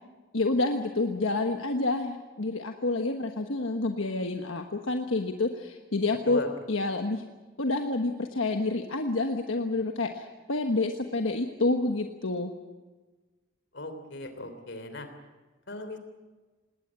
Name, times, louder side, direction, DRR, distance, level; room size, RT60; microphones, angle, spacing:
voice 1, 0.3-6.4 6.7-7.2 7.6-12.5, left 2 dB, 85° left, 4 dB, 1.3 m, -28 dB
voice 2, 13.7-15.1 15.7-16.0, left 2 dB, 65° left, 8 dB, 3.3 m, -37 dB
19.5 x 18.5 x 9.8 m, 1.3 s
head